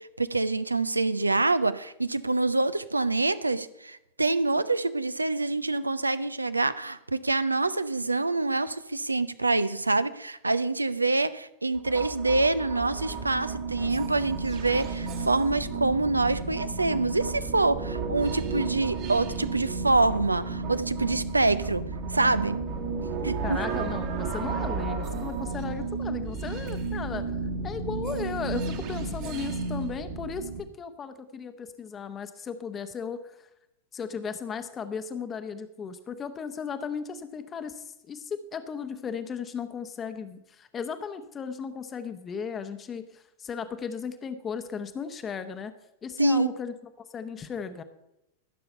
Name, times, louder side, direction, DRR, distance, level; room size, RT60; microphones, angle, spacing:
voice 1, 0.2-21.8 22.1-22.6 23.2-23.6 46.2-46.5, right 2 dB, 80° right, 14 dB, 0.6 m, -26 dB
sound 1, 11.7-30.6, right 4 dB, 45° right, 1.7 m, -33 dB
voice 2, 23.4-27.3 27.6-33.5 33.9-45.7 46.0-46.7 47.1-47.8, left 6 dB, 25° left, 9 dB, 0.9 m, -36 dB
14.5 x 6.8 x 5.6 m, 0.89 s
figure-of-eight pair, 90°, 0 cm